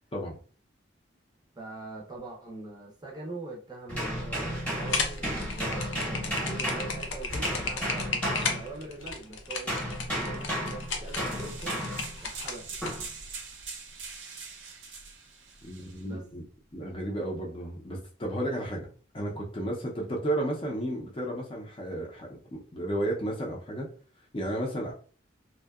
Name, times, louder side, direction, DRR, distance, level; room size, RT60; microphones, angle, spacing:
voice 1, 1.6-9.8 10.1-11.8 12.2-12.8 16.0-16.2, right 3 dB, 20° right, -2 dB, 0.5 m, -42 dB
sound 1, 3.9-9.2 9.7-12.2 12.8-13.1, equal, 5° left, 0.9 m, -33 dB
sound 2, 4.8-12.9, left 4 dB, 75° left, 0.5 m, -34 dB
sound 3, 10.7-16.0, right 5 dB, 70° right, 0.6 m, -43 dB
voice 2, 15.6-16.4 16.7-18.9 19.1-23.9 24.3-24.9, right 1 dB, 25° left, -1 dB, 0.5 m, -33 dB
2.6 x 2.1 x 2.3 m, 0.41 s
head